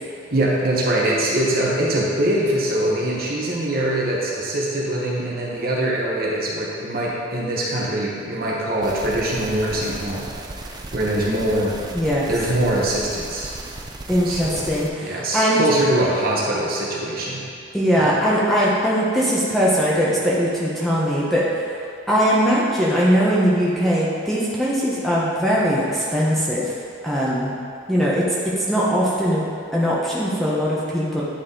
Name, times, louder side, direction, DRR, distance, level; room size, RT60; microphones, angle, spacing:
voice 1, 0.3-10.3 10.6-11.8 12.3-13.5 14.2-14.7 15.0-17.4 18.0-18.2, right 1 dB, 45° right, -4 dB, 1.1 m, -23 dB
sound 1, 8.8-14.9, right 2 dB, 20° right, 0.4 m, -36 dB
voice 2, 11.9-12.3 14.1-15.6 17.7-21.5 21.7-21.8 22.1-26.7 27.0-27.5 27.9-29.4 29.7-31.2, equal, ahead, -7 dB, 0.8 m, -20 dB
10.0 x 4.1 x 3.8 m, 2.4 s
head